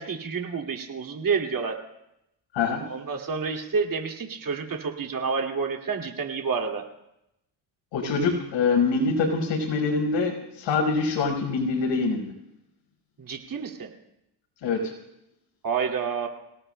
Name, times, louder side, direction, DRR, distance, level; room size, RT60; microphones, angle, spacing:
voice 1, 0.0-1.8 2.8-6.8 13.2-13.9 15.6-16.3, right 5 dB, 45° right, 3 dB, 2.4 m, -29 dB
voice 2, 7.9-12.3 14.6-14.8, left 4 dB, 80° left, 1 dB, 5.0 m, -24 dB
27.5 x 18.5 x 2.2 m, 0.84 s
cardioid pair, 85°, 45 cm